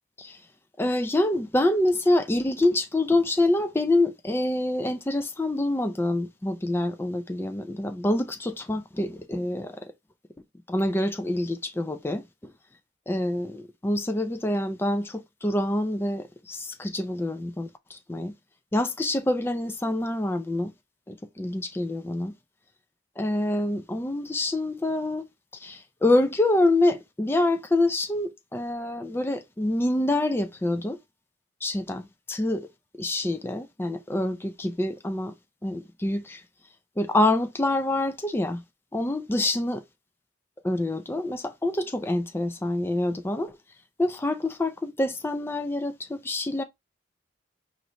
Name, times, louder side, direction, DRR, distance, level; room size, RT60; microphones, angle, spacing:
voice 1, 0.8-9.9 10.7-12.5 13.1-18.3 18.7-20.7 21.1-22.3 23.2-25.3 25.6-31.0 31.6-32.7 33.0-35.3 35.6-36.4 37.0-38.6 38.9-39.8 40.6-43.5 44.0-46.6, left 1 dB, 10° left, 0.3 m, -26 dB
5.1 x 2.5 x 3.0 m
head